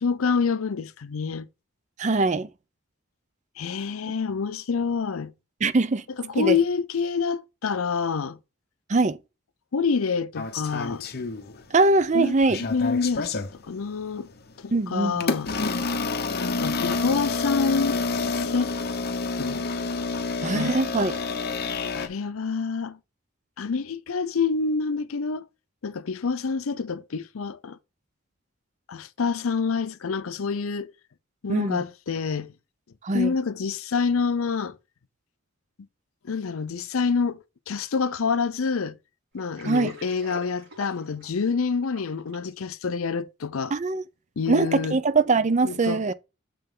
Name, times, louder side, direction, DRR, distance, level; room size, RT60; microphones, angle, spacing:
voice 1, 0.0-1.5 3.6-5.3 6.2-8.4 9.7-11.0 12.1-12.3 12.6-14.3 14.6-15.5 16.4-18.7 19.4-19.7 20.5-20.7 21.9-23.0 23.6-25.4 25.8-27.8 28.9-30.9 31.4-32.5 33.1-34.8 36.3-37.4 37.7-39.0 39.3-43.7 44.4-45.0 45.6-46.1, left 5 dB, 85° left, 0.6 m, -27 dB
voice 2, 2.0-2.5 5.6-6.0 6.4-6.6 8.9-9.2 11.7-12.6 14.7-15.2 20.4-21.1 31.5-31.8 33.0-33.3 39.6-39.9 43.7-44.0 44.5-46.1, right 3 dB, 35° right, 0.5 m, -22 dB
sound 1, 10.4-11.8 12.2-13.5 14.2-14.4 15.2-22.1, left 4 dB, 50° left, 0.7 m, -28 dB
Water, 39.4-42.5, right 2 dB, 65° right, 5.1 m, -44 dB
6.9 x 5.5 x 3.7 m
head